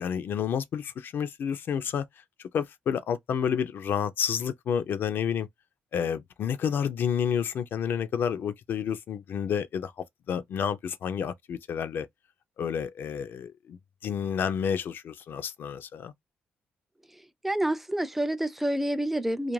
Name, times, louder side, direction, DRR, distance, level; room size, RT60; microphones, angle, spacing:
voice 1, 0.0-2.1 2.5-5.5 5.9-9.9 10.3-12.1 12.6-16.1, left 8 dB, 65° left, 0.4 m, -30 dB
voice 2, 17.4-19.5, right 1 dB, 5° right, 0.4 m, -28 dB
2.4 x 2.2 x 3.1 m
cardioid pair, 85°, 4 cm